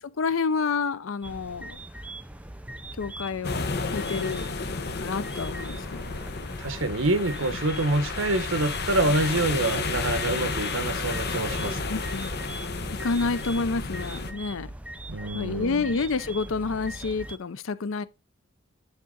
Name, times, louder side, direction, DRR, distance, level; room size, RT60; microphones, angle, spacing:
voice 1, 0.0-1.8 3.0-3.6 3.9-6.1 11.9-12.4 12.9-14.7 15.3-18.1, left 4 dB, 75° left, 0.6 m, -29 dB
sound 1, 1.2-17.4, right 1 dB, 5° right, 0.5 m, -40 dB
sound 2, 3.4-14.3, left 4 dB, 50° left, 0.9 m, -32 dB
voice 2, 6.6-12.0 15.1-15.9, right 2 dB, 75° right, 1.2 m, -26 dB
9.6 x 3.7 x 3.9 m
head